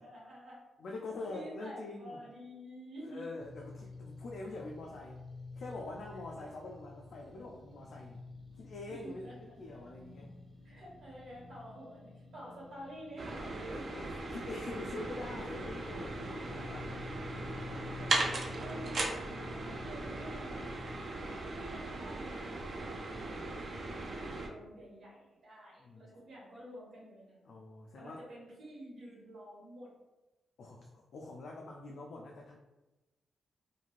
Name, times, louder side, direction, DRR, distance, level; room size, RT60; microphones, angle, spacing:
voice 1, 0.0-0.6 1.3-3.2 8.5-9.9 10.6-13.9 17.9-20.6 21.1-27.5 28.0-29.9, equal, 70° right, -5 dB, 1.3 m, -50 dB
voice 2, 0.8-2.3 3.0-5.2 5.5-8.2 8.5-10.3 13.9-16.9 17.7-18.2 25.8-26.1 27.4-28.2 30.6-32.6, left 2 dB, 70° left, -1 dB, 0.3 m, -45 dB
sound 1, 3.4-20.9, left 3 dB, 30° right, 1.3 m, -50 dB
sound 2, 13.2-24.5, right 2 dB, 50° right, 0.4 m, -38 dB
3.0 x 2.6 x 2.4 m, 1.1 s
cardioid pair, 100°, 0 cm